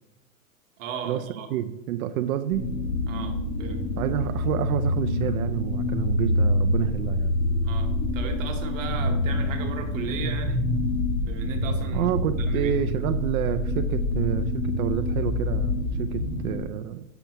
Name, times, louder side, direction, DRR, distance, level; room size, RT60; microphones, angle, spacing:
voice 1, 0.8-1.5 3.1-3.8 7.6-10.6 11.2-12.1 12.4-12.7, right 5 dB, 65° right, 4 dB, 1.3 m, -36 dB
voice 2, 1.5-2.7 4.0-7.3 11.9-17.0, right 10 dB, 80° right, 8 dB, 0.5 m, -28 dB
sound 1, 2.5-16.6, left 1 dB, 30° left, 1.5 m, -26 dB
6.8 x 5.6 x 3.0 m, 0.88 s
supercardioid pair, 150°, 42 cm